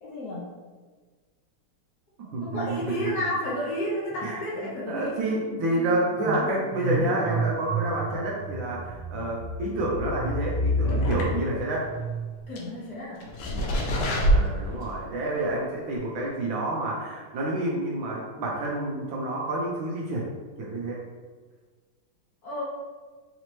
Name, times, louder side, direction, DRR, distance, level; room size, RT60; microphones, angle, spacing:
voice 1, 0.0-0.4 2.4-5.1 12.5-13.3 22.4-22.6, equal, 60° left, -5 dB, 1.1 m, -31 dB
voice 2, 2.3-3.2 4.2-4.4 4.9-11.9 14.1-20.3 20.6-21.0, right 2 dB, 75° right, -3 dB, 1.3 m, -29 dB
sound 1, 3.1-3.5 3.7-12.5, equal, 50° right, 0.8 m, -31 dB
sound 2, 10.8-11.7 12.0-12.1 12.6-12.7 13.2-15.0 15.4-15.5 16.0-16.1, right 1 dB, 85° left, 1.6 m, -25 dB
4.1 x 2.8 x 2.9 m, 1.4 s
omnidirectional pair, 2.4 m